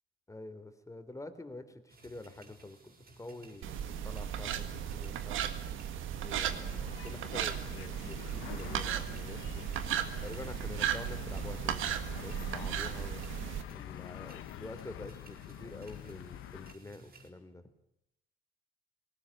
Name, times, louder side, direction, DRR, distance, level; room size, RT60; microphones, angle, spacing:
voice 1, 0.3-5.4 6.2-9.7 10.2-13.2 13.7-17.6, left 2 dB, 15° left, 9 dB, 3.1 m, -47 dB
sound 1, 1.9-17.3, right 2 dB, 50° right, 6.1 m, -57 dB
sound 2, 3.6-13.6, right 9 dB, 85° right, 1.8 m, -36 dB
sound 3, 6.3-16.7, left 13 dB, 90° left, 1.0 m, -47 dB
19.5 x 18.5 x 9.7 m, 0.81 s
cardioid pair, 90°, 20 cm